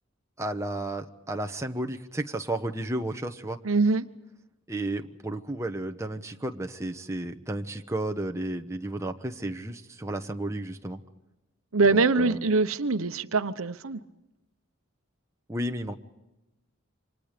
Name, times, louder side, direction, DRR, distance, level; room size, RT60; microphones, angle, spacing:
voice 1, 0.4-3.6 4.7-11.0 11.9-12.4 15.5-15.9, right 1 dB, 15° right, 5 dB, 1.1 m, -33 dB
voice 2, 3.6-4.1 11.7-14.0, right 3 dB, 80° right, 11 dB, 1.0 m, -23 dB
28.5 x 25.5 x 5.1 m, 0.95 s
head